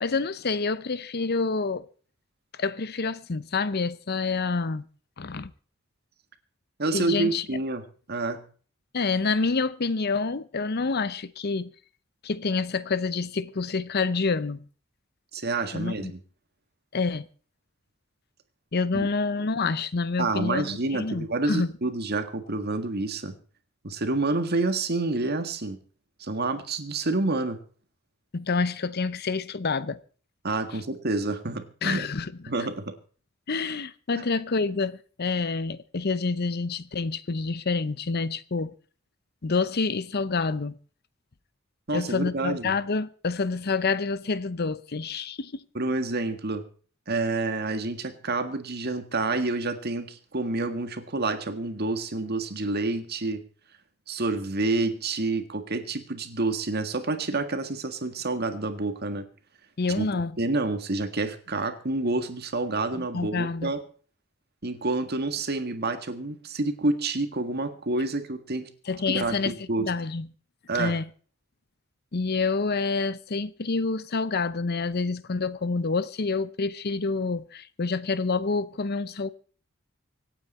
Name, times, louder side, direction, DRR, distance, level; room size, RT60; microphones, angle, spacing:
voice 1, 0.0-1.9 2.6-4.9 5.2-5.5 6.9-7.4 8.9-11.7 12.2-14.6 15.7-16.1 16.9-17.3 18.7-21.7 28.3-30.0 31.8-32.3 33.5-38.7 39.4-40.8 41.9-45.6 59.8-60.4 63.0-63.7 68.9-70.3 70.7-71.1 72.1-79.3, left 4 dB, 50° left, 0.7 m, -28 dB
voice 2, 6.8-8.4 15.3-16.2 18.9-19.1 20.2-23.3 23.8-25.8 26.2-27.6 30.4-32.1 32.5-32.9 34.2-34.3 41.9-42.7 45.7-46.6 47.1-53.4 54.1-59.3 59.9-63.8 64.6-68.7 69.1-69.9 70.7-71.0, right 2 dB, 50° right, 1.8 m, -28 dB
25.5 x 8.9 x 4.3 m
head